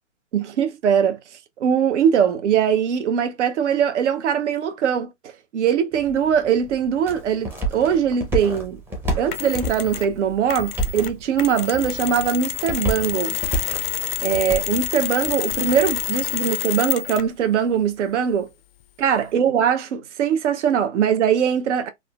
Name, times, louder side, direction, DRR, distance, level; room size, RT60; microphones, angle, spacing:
voice 1, 0.3-1.2 1.6-8.8 9.2-13.4 14.2-18.5 19.0-21.9, right 8 dB, 70° right, 0.7 m, -21 dB
sound 1, 5.9-16.5, right 1 dB, 5° right, 0.5 m, -31 dB
Mechanisms, 9.3-10.1 10.5-17.4, left 13 dB, 55° left, 0.5 m, -28 dB
3.6 x 2.1 x 2.2 m
hypercardioid pair, 125°, 36 cm